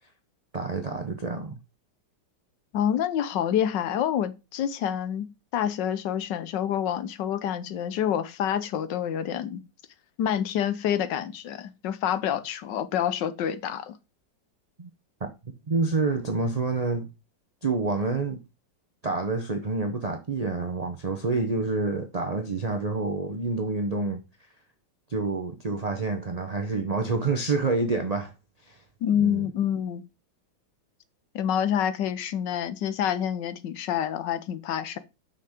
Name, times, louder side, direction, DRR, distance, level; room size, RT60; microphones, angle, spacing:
voice 1, 0.5-1.6 14.8-14.9 15.2-15.3 15.7-17.1 17.6-18.4 19.0-24.2 25.1-28.3 28.6-28.8 29.2-29.5, right 3 dB, 40° right, 0.5 m, -28 dB
voice 2, 2.7-9.6 10.2-14.0 29.0-30.0 31.3-35.0, left 9 dB, 75° left, 1.5 m, -27 dB
6.0 x 5.9 x 5.0 m
omnidirectional pair, 2.0 m